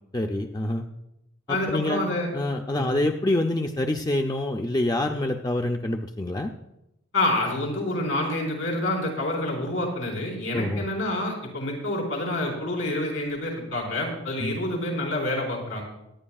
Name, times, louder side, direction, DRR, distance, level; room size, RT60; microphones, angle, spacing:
voice 1, 0.1-0.9 1.5-2.1 2.3-6.5 10.5-10.8 14.4-14.6, left 1 dB, 20° left, 3 dB, 0.5 m, -26 dB
voice 2, 1.5-2.3 2.8-3.1 7.1-15.8, left 1 dB, 80° left, -1 dB, 4.5 m, -28 dB
23.0 x 10.0 x 2.4 m, 0.86 s
head